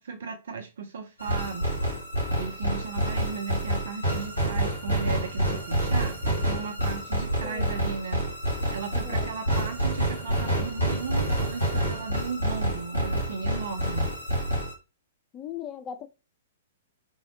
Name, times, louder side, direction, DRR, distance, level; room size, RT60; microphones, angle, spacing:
voice 1, 0.0-1.7 2.3-8.3 8.7-14.1, right 5 dB, 60° right, 0.3 m, -36 dB
sound 1, 1.2-14.7, equal, 85° right, 1.6 m, -28 dB
voice 2, 8.9-9.3 15.3-16.1, left 9 dB, 25° left, 0.3 m, -38 dB
3.5 x 2.0 x 2.6 m
figure-of-eight pair, 110°, 0 cm